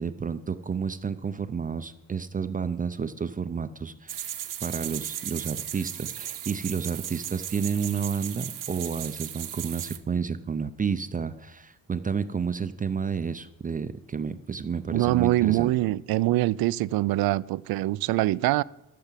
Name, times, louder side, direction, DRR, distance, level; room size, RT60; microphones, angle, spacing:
voice 1, 0.0-15.7, right 6 dB, 25° right, 0.5 m, -31 dB
sound 1, 4.1-10.0, right 11 dB, 65° right, 1.0 m, -36 dB
voice 2, 14.9-18.6, right 17 dB, 90° right, 0.5 m, -24 dB
14.0 x 6.8 x 7.4 m
cardioid pair, 135°, 35 cm